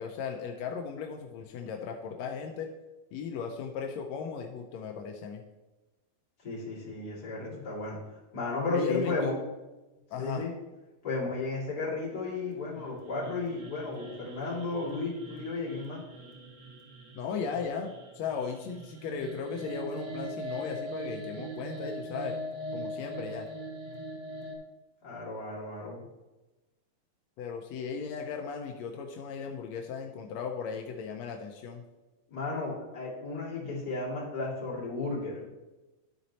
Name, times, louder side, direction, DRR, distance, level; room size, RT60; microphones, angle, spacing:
voice 1, 0.0-2.7 3.1-5.4 8.7-9.4 10.1-10.4 17.1-17.9 18.1-22.3 22.7-23.5 27.4-31.8, left 6 dB, 85° left, 3 dB, 1.5 m, -36 dB
voice 2, 6.4-8.0 8.3-9.3 10.2-10.5 11.0-16.0 25.0-26.0 32.3-35.5, left 3 dB, 30° left, -6 dB, 2.6 m, -34 dB
sound 1, 12.6-24.6, equal, 75° right, 1.0 m, -41 dB
12.0 x 4.2 x 4.0 m, 1.1 s
omnidirectional pair, 3.8 m